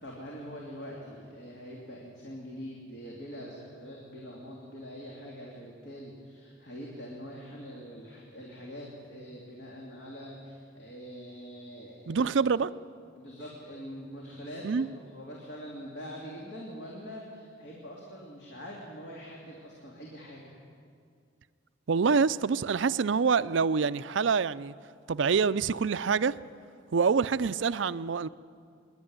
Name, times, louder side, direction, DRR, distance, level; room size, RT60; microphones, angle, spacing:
voice 1, 0.0-12.3 13.1-20.5, equal, 60° left, -3 dB, 3.2 m, -44 dB
voice 2, 12.1-12.7 14.6-14.9 21.9-24.7 25.1-26.4 26.9-28.3, right 5 dB, 70° right, 15 dB, 0.5 m, -26 dB
25.0 x 11.0 x 9.8 m, 2.3 s
head